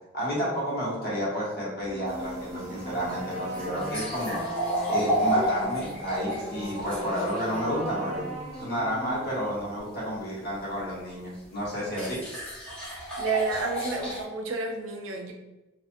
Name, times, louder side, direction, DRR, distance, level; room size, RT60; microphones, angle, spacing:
voice 1, 0.1-4.4 4.9-8.3 8.5-12.2, equal, 55° left, -6 dB, 1.1 m, -31 dB
sound 1, 1.8-9.8, equal, 35° right, 0.5 m, -38 dB
sound 2, 2.1-7.7 10.8-10.9 11.9-14.2, equal, 5° left, 0.8 m, -31 dB
voice 2, 13.2-15.3, right 4 dB, 90° right, 2 dB, 0.5 m, -30 dB
2.6 x 2.4 x 2.5 m, 1.1 s
head